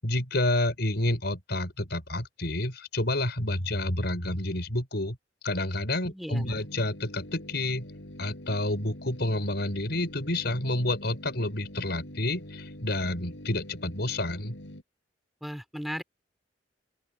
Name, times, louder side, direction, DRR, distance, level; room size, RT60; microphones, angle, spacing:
voice 1, 0.0-5.2 5.4-7.9 8.2-14.6, left 1 dB, 65° left, 6.9 m, -29 dB
voice 2, 6.0-6.6 15.4-16.0, equal, ahead, 4.7 m, -36 dB
sound 1, 6.4-14.8, equal, 80° left, 7.6 m, -44 dB
open air
head